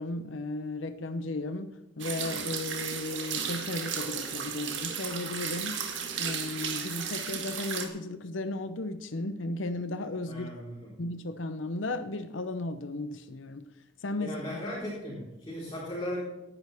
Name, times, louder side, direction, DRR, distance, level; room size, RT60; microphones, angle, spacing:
voice 1, 0.0-5.8 6.2-10.5 11.0-13.7 14.0-14.6, left 2 dB, 80° left, 10 dB, 0.8 m, -35 dB
sound 1, 2.0-7.9, right 7 dB, 70° right, 1.8 m, -34 dB
voice 2, 10.2-10.9 14.2-16.2, left 1 dB, 25° left, -9 dB, 4.4 m, -37 dB
17.5 x 11.0 x 3.5 m, 0.96 s
head